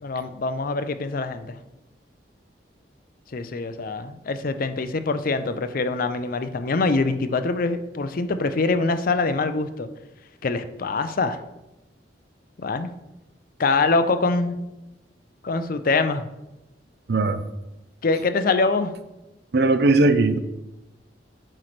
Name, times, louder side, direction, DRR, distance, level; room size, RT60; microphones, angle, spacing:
voice 1, 0.0-1.6 3.3-9.9 10.4-11.4 12.6-12.9 13.6-14.6 15.4-16.2 18.0-18.9, left 3 dB, 55° left, 10 dB, 0.5 m, -24 dB
voice 2, 17.1-17.4 19.5-20.4, right 2 dB, 65° right, 11 dB, 0.6 m, -18 dB
8.9 x 3.2 x 5.9 m, 0.97 s
head